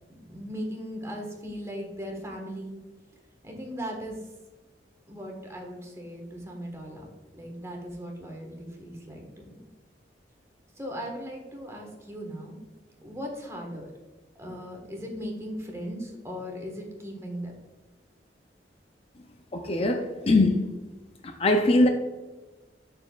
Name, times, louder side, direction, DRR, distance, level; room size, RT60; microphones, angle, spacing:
voice 1, 0.1-2.8 3.4-4.2 5.1-7.1 7.3-9.6 10.8-12.6 13.0-13.9 14.4-17.5, equal, 15° right, 1.3 m, -38 dB
voice 2, 19.5-20.7 21.2-21.9, left 2 dB, 35° left, 0.5 m, -22 dB
11.5 x 4.4 x 2.3 m
head